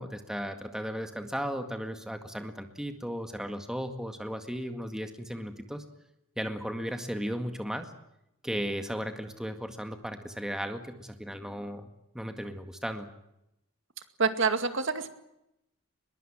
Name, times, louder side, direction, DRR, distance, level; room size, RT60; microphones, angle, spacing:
voice 1, 0.0-5.8 6.4-7.9 8.4-11.9 12.1-13.1, equal, 5° right, 6 dB, 1.9 m, -35 dB
voice 2, 14.2-15.1, right 4 dB, 60° right, 9 dB, 2.2 m, -26 dB
22.5 x 22.0 x 8.9 m, 0.85 s
head